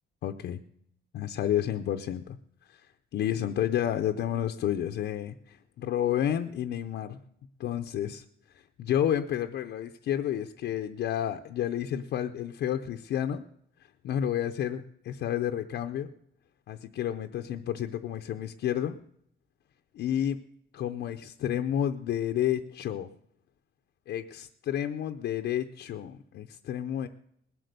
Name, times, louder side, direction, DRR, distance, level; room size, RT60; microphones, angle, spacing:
voice 1, 0.2-0.6 1.1-2.4 2.7-2.9 3.1-7.2 7.6-8.2 8.8-13.4 13.8-16.1 16.7-19.0 19.9-20.4 20.7-23.1 24.1-27.1, left 10 dB, 60° left, 5 dB, 0.6 m, -30 dB
19.5 x 7.8 x 6.7 m, 0.70 s
cardioid pair, 175°, 20 cm